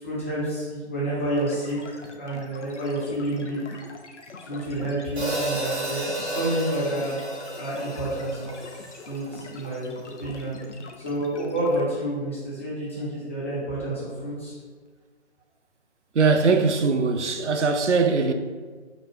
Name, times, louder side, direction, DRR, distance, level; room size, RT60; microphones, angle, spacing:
voice 1, 0.0-3.6 4.4-7.2 7.6-8.5 9.0-9.9 10.2-10.6 11.0-14.5, right 1 dB, 10° left, 0.5 m, -29 dB
sound 1, 1.4-11.8, left 3 dB, 80° left, 0.6 m, -44 dB
Hi-hat, 5.2-9.4, right 2 dB, 65° right, 1.4 m, -32 dB
voice 2, 16.1-18.3, right 4 dB, 85° right, 0.5 m, -21 dB
4.0 x 2.3 x 4.1 m
figure-of-eight pair, 140°, 34 cm